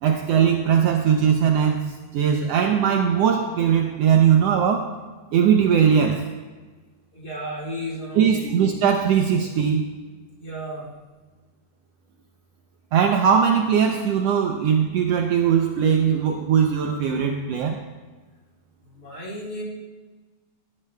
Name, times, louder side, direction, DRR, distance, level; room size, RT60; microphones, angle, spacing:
voice 1, 0.0-4.9 5.3-6.2 8.2-9.8 12.9-17.8, right 7 dB, 75° right, 3 dB, 1.6 m, -20 dB
voice 2, 7.1-8.5 10.4-10.9 18.8-19.6, equal, 35° left, -4 dB, 2.3 m, -33 dB
16.5 x 12.0 x 2.3 m, 1.3 s
omnidirectional pair, 3.3 m